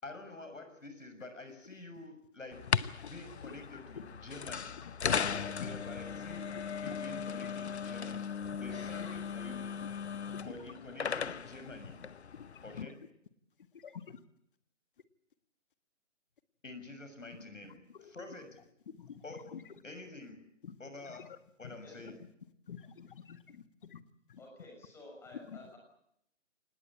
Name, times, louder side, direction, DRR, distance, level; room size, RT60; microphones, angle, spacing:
voice 1, 0.0-2.7 3.0-4.7 5.0-8.3 8.6-9.8 10.4-12.0 12.6-13.0 16.6-17.8 18.1-18.6 19.2-19.5 19.8-20.5 20.8-22.2, left 2 dB, 80° left, 8 dB, 6.5 m, -48 dB
sound 1, 2.5-12.8, left 7 dB, 60° left, 1.1 m, -37 dB
voice 2, 4.0-5.8 6.5-7.0 7.4-7.7 8.1-8.2 9.0-9.2 9.8-10.7 12.3-12.5 12.8-13.0 13.7-14.2 17.9-18.1 18.9-19.7 20.6-21.4 22.0-22.1 22.7-24.0 24.3-24.4 25.3-25.6, left 7 dB, 45° left, 11 dB, 1.8 m, -49 dB
voice 3, 24.4-25.8, left 2 dB, 5° left, 1 dB, 6.3 m, -52 dB
25.5 x 20.0 x 8.6 m, 0.75 s
figure-of-eight pair, 150°, 37 cm